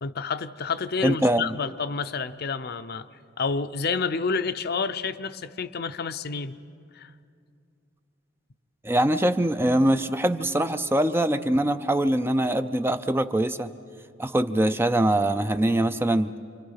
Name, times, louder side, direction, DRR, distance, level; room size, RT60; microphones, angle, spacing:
voice 1, 0.0-3.1 3.4-6.6 6.9-7.1, left 5 dB, 50° left, 11 dB, 0.6 m, -29 dB
voice 2, 1.0-1.5 8.8-13.7 14.2-16.3, right 1 dB, 10° right, 10 dB, 0.5 m, -23 dB
28.5 x 24.5 x 5.7 m, 2.4 s
head